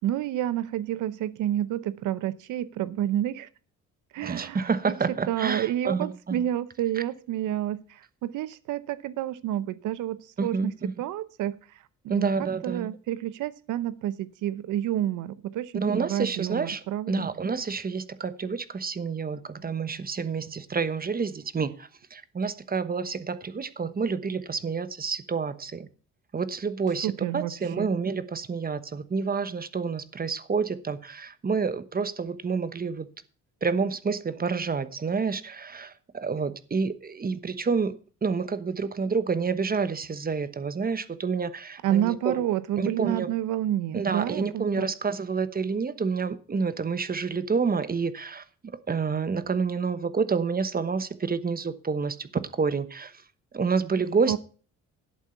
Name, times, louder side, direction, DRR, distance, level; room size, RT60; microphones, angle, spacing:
voice 1, 0.0-3.5 4.1-4.9 5.3-17.3 27.0-27.9 41.8-44.9 54.3-54.4, right 12 dB, 85° right, 0.7 m, -29 dB
voice 2, 4.2-6.5 10.4-10.9 12.1-12.9 15.8-25.9 26.3-33.1 33.6-37.9 38.2-42.4 42.8-43.3 43.9-48.4 48.9-53.1 53.5-54.4, right 5 dB, 30° right, 1.1 m, -28 dB
11.0 x 8.3 x 5.8 m
cardioid pair, 90°, 30 cm